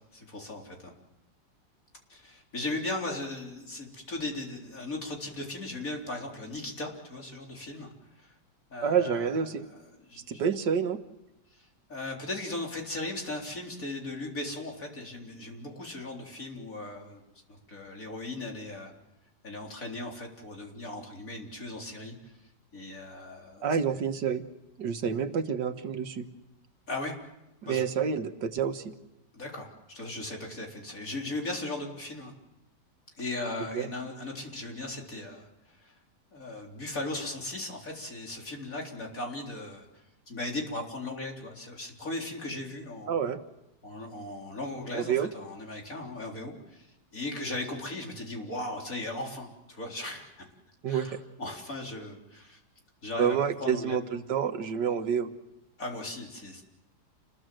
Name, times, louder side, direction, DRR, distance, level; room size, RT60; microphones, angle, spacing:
voice 1, 0.1-0.9 2.1-7.9 8.2-8.3 8.7-10.4 11.5-17.2 17.5-18.9 19.4-22.3 22.7-24.1 26.9-27.2 27.7-27.8 29.3-32.3 33.2-36.0 36.3-43.1 43.8-50.5 50.9-52.6 53.0-54.0 55.8-56.6, left 2 dB, 50° left, 0 dB, 4.4 m, -38 dB
voice 2, 8.8-9.7 10.3-11.0 23.6-24.4 24.8-26.3 27.6-28.9 33.7-33.9 43.1-43.4 44.9-45.3 50.8-51.1 53.2-55.3, right 7 dB, 90° right, 7 dB, 2.0 m, -28 dB
29.0 x 21.0 x 7.7 m, 0.92 s
omnidirectional pair, 1.8 m